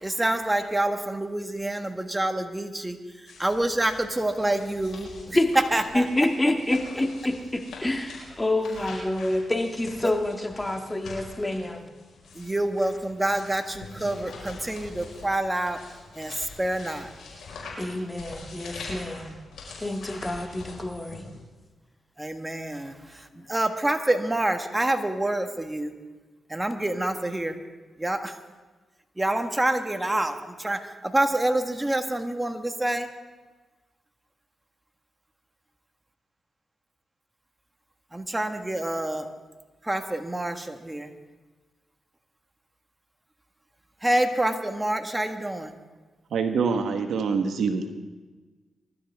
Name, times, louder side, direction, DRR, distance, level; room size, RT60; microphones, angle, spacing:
voice 1, 0.0-6.1 10.0-10.1 12.3-15.8 16.1-17.1 22.2-25.9 26.5-27.6 28.0-28.4 29.2-33.1 38.1-39.3 39.8-41.1 44.0-45.7, right 1 dB, 15° right, 7 dB, 1.6 m, -27 dB
sound 1, 3.3-21.4, left 3 dB, 80° left, 5.1 m, -44 dB
voice 2, 5.9-11.8 17.8-19.4 19.8-21.3 23.3-23.4, left 1 dB, 20° left, 4 dB, 1.8 m, -27 dB
voice 3, 46.3-48.0, right 5 dB, 75° right, 7 dB, 1.3 m, -25 dB
24.0 x 12.5 x 3.6 m, 1.3 s
supercardioid pair, 50°, 0 cm